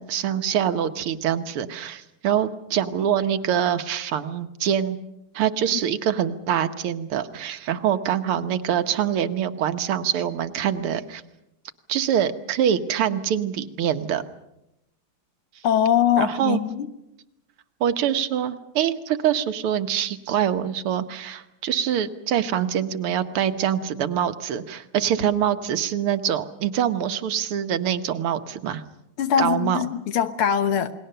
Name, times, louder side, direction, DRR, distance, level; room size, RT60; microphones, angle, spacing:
voice 1, 0.0-5.0 5.3-11.2 11.9-14.2 16.2-16.6 17.8-28.8 29.4-29.8, right 9 dB, 85° right, 9 dB, 2.0 m, -24 dB
voice 2, 15.6-16.9 29.2-30.9, left 9 dB, 80° left, 10 dB, 2.1 m, -22 dB
28.5 x 20.0 x 6.8 m, 0.87 s
omnidirectional pair, 2.4 m